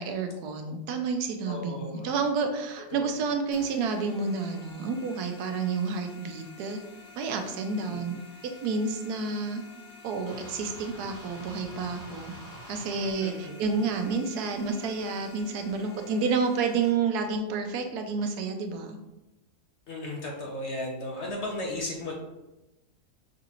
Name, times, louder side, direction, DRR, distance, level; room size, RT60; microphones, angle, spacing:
voice 1, 0.0-6.8 7.2-8.1 8.6-9.6 10.0-12.3 12.7-19.0, right 4 dB, 80° right, 5 dB, 1.1 m, -30 dB
voice 2, 1.4-2.1 2.9-3.0 7.9-8.1 13.2-13.6 19.9-22.1, left 1 dB, 55° left, -1 dB, 0.9 m, -35 dB
sound 1, 3.5-16.9, left 4 dB, 90° left, 1.3 m, -50 dB
sound 2, 10.3-13.1, right 1 dB, 15° right, 0.6 m, -46 dB
5.6 x 2.5 x 2.9 m, 0.98 s
omnidirectional pair, 1.6 m